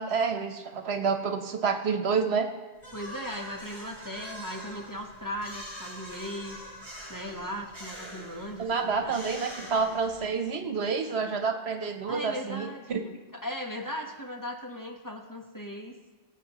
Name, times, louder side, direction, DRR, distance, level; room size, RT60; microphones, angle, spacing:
voice 1, 0.0-2.5 8.6-13.0, right 5 dB, 75° right, 7 dB, 1.2 m, -28 dB
sound 1, 2.8-10.5, equal, 35° right, 3.9 m, -44 dB
voice 2, 2.9-6.6 7.1-9.1 9.6-9.7 12.1-16.0, equal, 20° left, 1 dB, 1.1 m, -38 dB
22.5 x 8.3 x 3.0 m, 1.2 s
omnidirectional pair, 1.1 m